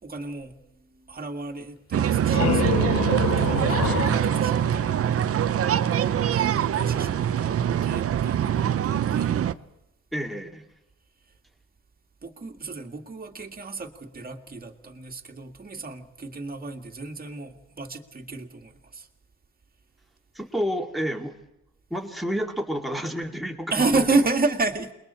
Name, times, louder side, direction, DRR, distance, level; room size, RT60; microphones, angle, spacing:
voice 1, 0.0-5.2 6.3-9.4 12.2-19.1 23.7-24.9, right 3 dB, 30° right, 3 dB, 2.1 m, -31 dB
sound 1, 1.9-5.6, left 10 dB, 60° left, 0.8 m, -29 dB
sound 2, 1.9-9.5, right 10 dB, 50° right, 0.8 m, -23 dB
voice 2, 10.1-10.7 20.3-21.4 21.9-24.0, equal, ahead, 3 dB, 2.5 m, -30 dB
28.5 x 21.0 x 4.4 m, 0.90 s
cardioid pair, 90°, 30 cm